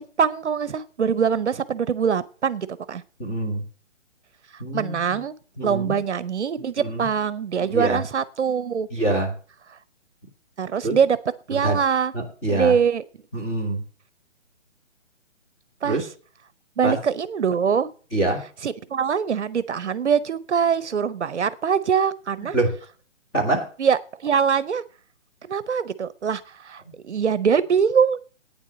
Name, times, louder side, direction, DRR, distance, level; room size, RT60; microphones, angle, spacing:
voice 1, 0.0-3.0 4.5-5.3 5.6-8.9 10.6-11.2 11.5-12.1 12.5-13.0 15.8-16.0 16.8-17.9 18.6-22.6 23.8-24.8 25.4-28.2, right 7 dB, 65° right, 0.8 m, -23 dB
voice 2, 3.2-3.7 4.6-5.2 5.6-6.0 6.8-7.1 7.7-8.0 8.9-9.3 10.8-11.0 11.5-11.8 12.1-12.7 13.3-13.8 15.8-16.1 16.8-17.0 18.1-18.4 22.5-22.7 23.3-23.7, right 2 dB, 10° left, 1.6 m, -25 dB
9.3 x 7.3 x 7.6 m
hypercardioid pair, 175°, 37 cm